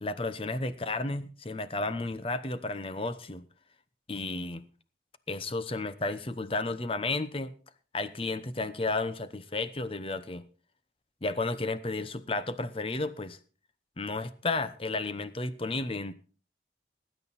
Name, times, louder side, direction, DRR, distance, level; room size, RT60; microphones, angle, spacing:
voice 1, 0.0-3.4 4.1-4.6 5.3-7.5 7.9-10.4 11.2-13.4 14.0-16.1, left 2 dB, 30° left, 0.8 m, -32 dB
19.0 x 9.2 x 4.1 m
head